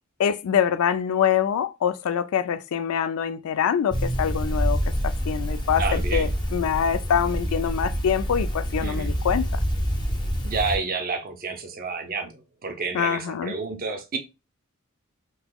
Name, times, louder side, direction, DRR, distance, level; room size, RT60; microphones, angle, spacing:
voice 1, 0.2-4.8 5.0-9.5 12.9-13.5, left 8 dB, 85° left, 0.3 m, -24 dB
sound 1, 3.9-10.8, equal, 20° left, 0.6 m, -26 dB
voice 2, 5.8-6.3 8.8-9.1 10.4-14.2, right 4 dB, 45° right, 0.6 m, -30 dB
3.8 x 2.9 x 2.3 m
head